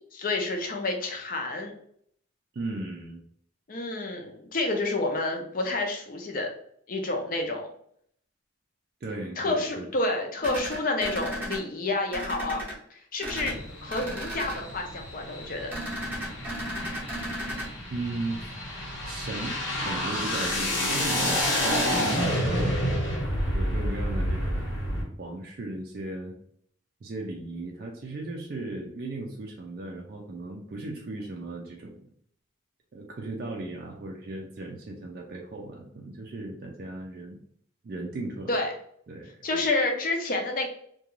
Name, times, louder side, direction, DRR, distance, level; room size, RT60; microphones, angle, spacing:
voice 1, 0.1-1.7 3.7-6.5 6.9-7.7 9.4-12.6 12.9-13.6 13.8-15.7 21.7-22.0 38.5-38.7 39.4-40.7, left 2 dB, 45° left, 3 dB, 0.5 m, -29 dB
voice 2, 2.5-3.2 9.0-9.9 17.9-18.4 19.0-19.6 19.8-22.8 23.5-24.8 25.2-26.3 27.0-32.1 32.9-37.4 37.8-38.5 39.1-39.7, right 2 dB, 50° right, 0 dB, 0.3 m, -36 dB
sound 1, 10.4-11.6 12.1-12.7 13.2-13.5 13.9-14.6 15.7-17.7, equal, 10° right, 0.7 m, -34 dB
sound 2, 13.3-25.0, equal, 70° left, 1.0 m, -29 dB
2.4 x 2.2 x 3.0 m, 0.65 s
head